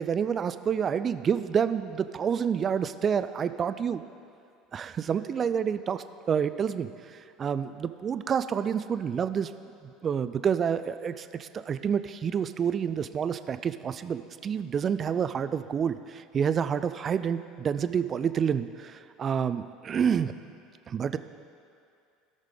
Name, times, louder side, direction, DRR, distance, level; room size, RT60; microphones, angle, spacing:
voice 1, 0.0-4.0 4.7-6.9 7.4-9.5 10.0-20.3 20.9-21.2, right 7 dB, 35° right, 12 dB, 0.4 m, -28 dB
17.0 x 6.5 x 3.8 m, 2.5 s
figure-of-eight pair, 65°, 0 cm